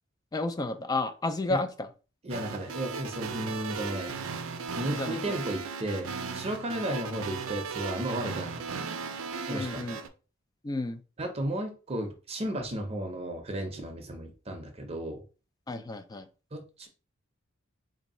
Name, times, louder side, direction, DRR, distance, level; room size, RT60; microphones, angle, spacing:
voice 1, 0.3-1.9 4.9-5.4 6.8-6.9 9.5-10.0 10.6-11.0 15.7-16.3, left 2 dB, 20° left, 9 dB, 0.3 m, -32 dB
voice 2, 2.2-4.1 4.7-8.5 9.5-9.8 11.2-15.2 16.5-16.9, right 1 dB, 30° right, 4 dB, 0.6 m, -34 dB
sound 1, 2.3-10.1, right 5 dB, 85° right, 0.5 m, -36 dB
3.1 x 2.6 x 4.1 m, 0.35 s
head